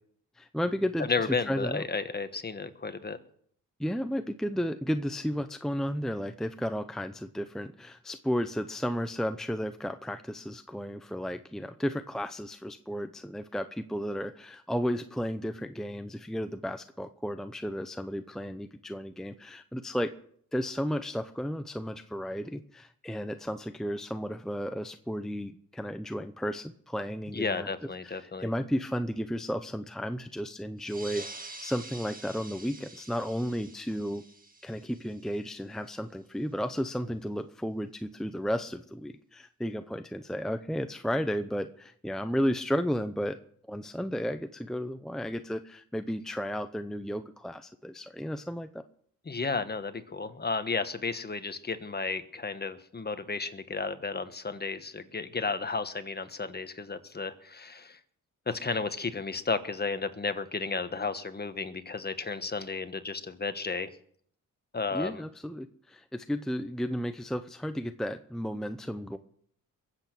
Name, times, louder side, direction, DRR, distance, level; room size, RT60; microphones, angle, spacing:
voice 1, 0.4-1.8 3.8-20.1 20.5-27.7 28.0-34.2 34.6-43.4 43.7-48.8 64.9-69.2, equal, ahead, 9 dB, 0.7 m, -33 dB
voice 2, 1.1-3.2 27.3-28.5 49.3-58.0 58.5-63.9 64.7-65.2, left 4 dB, 30° left, 10 dB, 1.4 m, -33 dB
sound 1, 30.8-35.9, right 2 dB, 25° right, 2.1 m, -47 dB
22.0 x 8.2 x 6.2 m, 0.63 s
cardioid pair, 80°, 34 cm